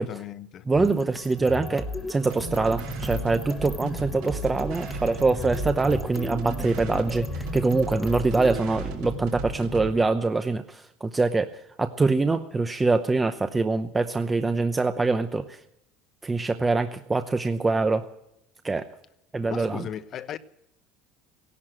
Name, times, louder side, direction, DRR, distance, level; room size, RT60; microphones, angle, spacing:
voice 1, 0.0-0.6 19.5-20.4, left 10 dB, 45° left, 1.0 m, -36 dB
sound 1, 0.7-8.6, left 2 dB, 10° left, 1.3 m, -36 dB
voice 2, 0.7-15.6 16.2-18.1 18.6-18.9 19.3-19.8, right 3 dB, 15° right, 0.8 m, -24 dB
sound 2, 2.3-10.0, right 3 dB, 75° right, 5.8 m, -35 dB
17.0 x 11.0 x 7.7 m
supercardioid pair, 130°, 0 cm